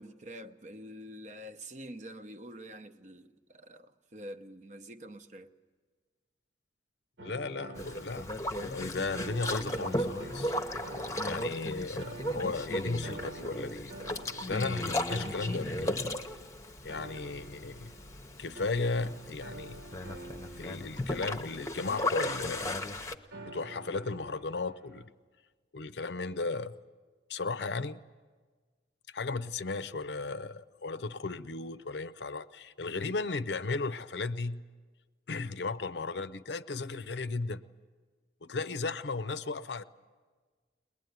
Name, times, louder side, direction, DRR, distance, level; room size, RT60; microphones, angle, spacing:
voice 1, 0.0-5.5 10.0-10.1, equal, 40° right, 0.8 m, -46 dB
voice 2, 7.2-8.3 8.6-10.5 11.2-13.9 14.5-16.0 16.8-17.9 18.4-19.8 20.6-22.7 23.4-25.1 25.7-26.7 27.3-28.0 29.1-34.6 35.3-37.6 38.4-39.8, left 3 dB, 65° left, 0.6 m, -35 dB
sound 1, 7.2-8.8 9.1-11.6 12.0-22.0 23.3-25.1, right 2 dB, 75° right, 1.5 m, -48 dB
Boat Water vehicle, 7.8-23.2, left 1 dB, 15° left, 0.8 m, -36 dB
22.0 x 20.5 x 9.3 m
head